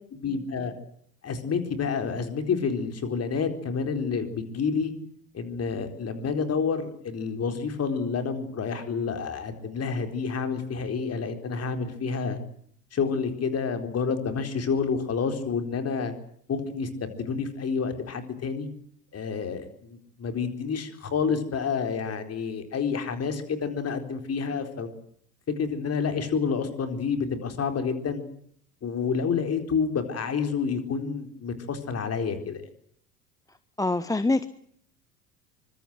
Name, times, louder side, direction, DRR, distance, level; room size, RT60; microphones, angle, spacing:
voice 1, 0.1-0.7 1.2-4.9 5.3-12.4 12.9-16.1 16.5-18.7 19.1-25.0 25.6-28.2 28.8-32.6, left 5 dB, 30° left, 8 dB, 4.2 m, -29 dB
voice 2, 33.8-34.5, left 2 dB, 5° left, 14 dB, 1.0 m, -24 dB
24.5 x 22.0 x 8.0 m, 0.66 s
figure-of-eight pair, 70°, 47 cm